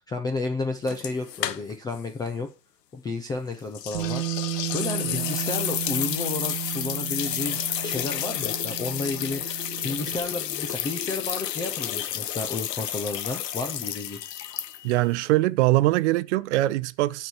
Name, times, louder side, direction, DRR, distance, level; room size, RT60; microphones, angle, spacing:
voice 1, 0.0-2.5 2.9-14.2, left 3 dB, 10° left, 0.5 m, -32 dB
sound 1, 0.9-2.0 2.3-2.4 3.7-15.0, left 11 dB, 80° left, 1.0 m, -31 dB
Bass guitar, 3.9-10.2, right 20 dB, 65° right, 1.1 m, -34 dB
voice 2, 14.8-17.3, right 18 dB, 45° right, 0.6 m, -22 dB
12.5 x 4.6 x 7.0 m
hypercardioid pair, 135°, 48 cm